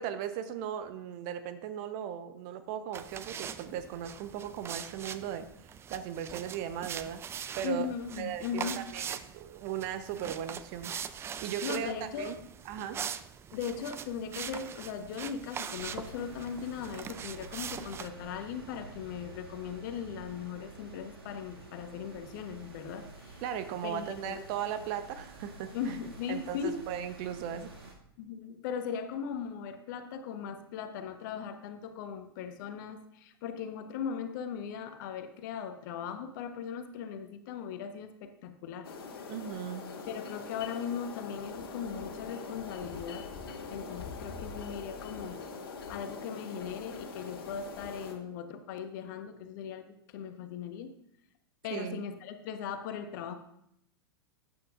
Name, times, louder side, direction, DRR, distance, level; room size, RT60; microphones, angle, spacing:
voice 1, 0.0-7.9 8.2-12.4 12.7-13.0 23.4-26.0 26.3-27.7 39.3-39.9 51.7-52.0, right 9 dB, 45° right, 10 dB, 0.9 m, -37 dB
sound 1, 2.9-18.1, right 8 dB, 20° right, 0.4 m, -42 dB
voice 2, 7.6-8.8 11.6-12.3 13.5-23.4 23.8-24.4 25.7-26.8 28.2-38.9 40.1-43.3 43.7-45.4 45.9-49.8 50.1-50.9 51.6-53.3, left 7 dB, 55° left, 7 dB, 1.2 m, -38 dB
sound 2, 15.7-27.9, right 2 dB, 75° right, 2.1 m, -49 dB
sound 3, 38.8-48.1, left 4 dB, 70° left, 1.7 m, -43 dB
13.5 x 9.1 x 2.5 m, 0.74 s
figure-of-eight pair, 100°, 13 cm